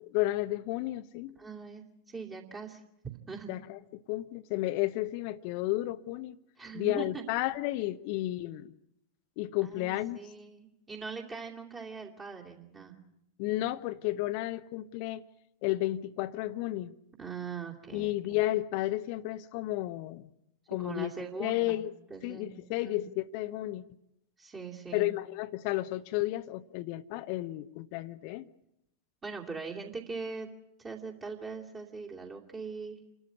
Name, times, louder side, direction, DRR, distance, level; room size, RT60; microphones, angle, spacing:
voice 1, 0.1-1.4 3.5-6.4 6.7-8.7 9.4-10.2 13.4-15.2 15.6-16.9 17.9-20.3 20.7-21.1 21.4-21.9 22.2-23.8 24.9-28.5, left 17 dB, 45° left, 0.8 m, -32 dB
voice 2, 1.4-2.8 3.3-3.5 6.6-7.2 9.6-13.0 17.2-18.4 20.8-21.8 22.1-22.6 22.8-23.0 24.4-25.1 29.2-30.5 30.8-33.0, right 5 dB, 20° right, 2.7 m, -41 dB
28.5 x 12.5 x 9.6 m
figure-of-eight pair, 90°, 0 cm